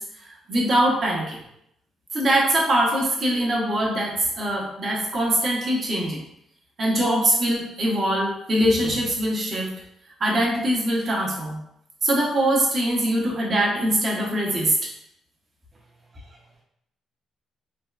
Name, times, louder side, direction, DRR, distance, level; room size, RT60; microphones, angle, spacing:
voice 1, 0.0-1.4 2.1-6.2 6.8-9.7 10.2-11.6 12.0-14.9, right 1 dB, 50° right, -3 dB, 0.8 m, -23 dB
voice 2, 15.7-16.6, right 3 dB, 20° right, -4 dB, 0.5 m, -59 dB
3.4 x 2.1 x 2.3 m, 0.77 s
cardioid pair, 90°, 0 cm